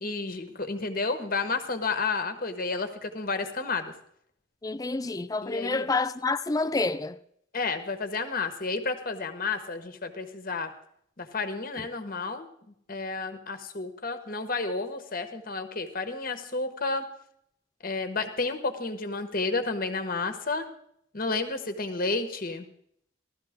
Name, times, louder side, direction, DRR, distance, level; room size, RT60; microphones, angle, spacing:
voice 1, 0.0-3.9 5.4-5.9 7.5-10.7 11.2-12.5 12.9-17.1 17.8-20.7 21.1-22.7, left 3 dB, 45° left, 1.3 m, -31 dB
voice 2, 4.6-7.2, left 3 dB, 15° left, 0.4 m, -28 dB
16.0 x 13.0 x 3.7 m
head